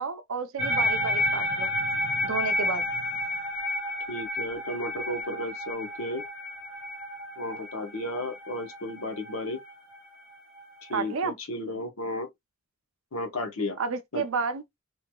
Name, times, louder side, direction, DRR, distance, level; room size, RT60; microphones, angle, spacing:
voice 1, 0.0-1.7 2.2-2.8 10.9-11.3 13.8-14.6, right 5 dB, 70° right, 0.6 m, -31 dB
sound 1, 0.6-11.2, left 1 dB, 5° right, 1.5 m, -31 dB
voice 2, 4.1-6.2 7.4-9.6 10.9-12.3 13.1-13.8 14.1-14.2, left 1 dB, 75° left, 0.9 m, -33 dB
3.1 x 2.8 x 2.2 m
head